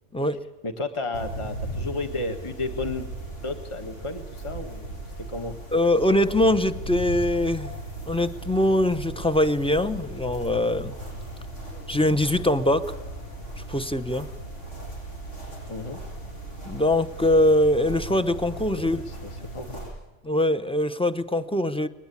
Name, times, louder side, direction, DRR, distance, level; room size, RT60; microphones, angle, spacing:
voice 1, 0.1-0.4 5.7-7.8 8.1-10.9 11.9-12.9 13.7-14.3 16.6-19.0 20.2-21.9, left 1 dB, 5° left, 0.7 m, -22 dB
voice 2, 0.6-3.1 3.4-5.5 15.7-16.0 18.7-19.8, left 3 dB, 25° left, 1.7 m, -33 dB
sound 1, 1.1-19.9, right 2 dB, 85° left, 8.3 m, -37 dB
22.0 x 19.0 x 8.4 m
omnidirectional pair, 1.2 m